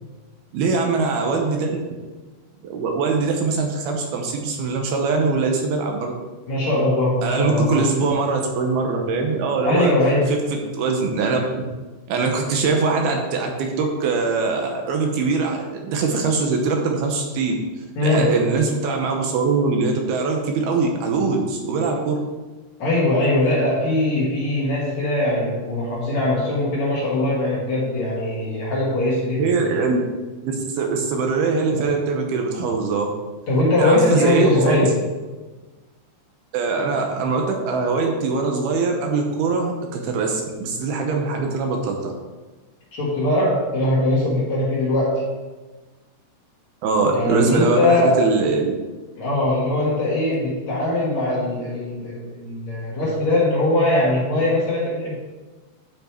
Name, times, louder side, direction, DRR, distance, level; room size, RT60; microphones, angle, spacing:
voice 1, 0.5-1.8 2.6-6.2 7.2-9.9 10.3-11.6 12.1-17.6 18.0-22.2 29.4-30.0 30.4-33.1 33.8-34.8 36.5-42.1 46.8-48.7, right 4 dB, 75° right, 2 dB, 2.7 m, -22 dB
voice 2, 6.5-7.8 9.6-10.5 18.0-18.4 22.8-29.6 33.5-35.0 42.9-45.3 47.1-48.4 49.2-55.2, left 1 dB, 55° left, -5 dB, 2.2 m, -21 dB
10.5 x 5.9 x 4.5 m, 1.2 s
omnidirectional pair, 4.9 m